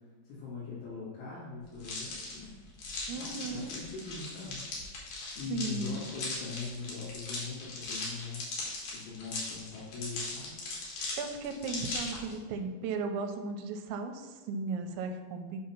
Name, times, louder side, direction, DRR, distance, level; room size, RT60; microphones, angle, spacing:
voice 1, 0.2-2.6 3.1-4.6 5.4-8.5 8.9-10.6, left 4 dB, 80° left, -11 dB, 4.2 m, -41 dB
sound 1, 1.8-12.3, left 2 dB, 60° left, 2.6 m, -39 dB
voice 2, 3.1-3.8 5.5-6.0 11.2-15.6, right 4 dB, 85° right, 6 dB, 2.9 m, -36 dB
8.2 x 2.8 x 5.7 m, 1.4 s
omnidirectional pair, 5.2 m